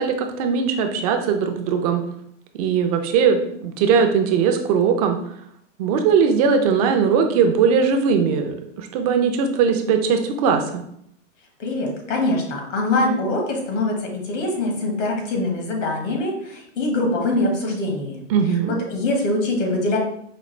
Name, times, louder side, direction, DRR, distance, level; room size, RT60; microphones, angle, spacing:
voice 1, 0.0-2.0 2.6-5.2 5.8-10.8 18.3-18.7, right 6 dB, 30° right, 6 dB, 0.4 m, -19 dB
voice 2, 11.6-18.2 18.9-20.0, left 2 dB, 70° left, 1 dB, 1.5 m, -23 dB
5.0 x 2.3 x 3.2 m, 0.71 s
hypercardioid pair, 140°, 37 cm